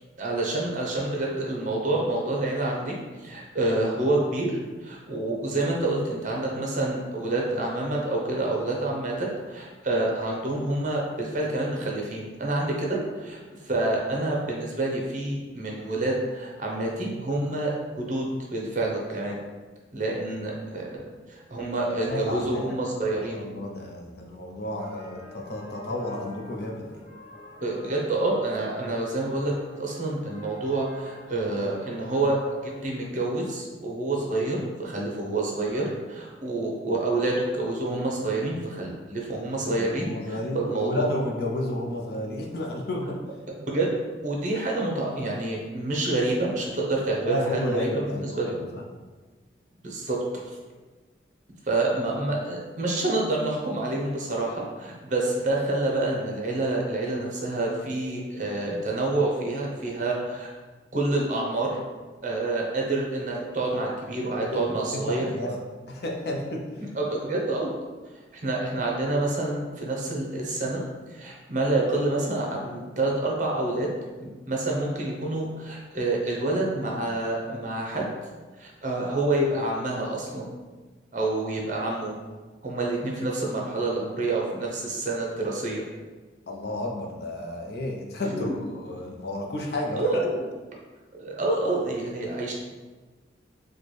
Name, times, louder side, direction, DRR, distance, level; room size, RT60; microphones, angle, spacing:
voice 1, 0.0-18.2 18.5-19.4 19.9-23.4 27.6-32.4 32.8-41.1 43.7-43.9 44.2-48.6 49.8-50.6 51.7-60.5 60.9-61.8 62.2-65.6 66.9-67.8 68.3-70.8 71.1-73.9 74.2-78.1 78.6-80.5 81.1-82.1 82.6-85.8 88.3-88.5 89.9-90.4 91.1-92.5, right 2 dB, 40° right, -1 dB, 0.7 m, -28 dB
voice 2, 22.0-22.6 23.1-26.9 39.6-43.1 47.2-48.8 64.4-65.5 65.9-66.6 86.5-90.3, left 1 dB, 60° left, 0 dB, 0.6 m, -32 dB
sound 1, 24.8-32.8, equal, 40° left, 1.0 m, -47 dB
4.2 x 2.3 x 3.2 m, 1.3 s
head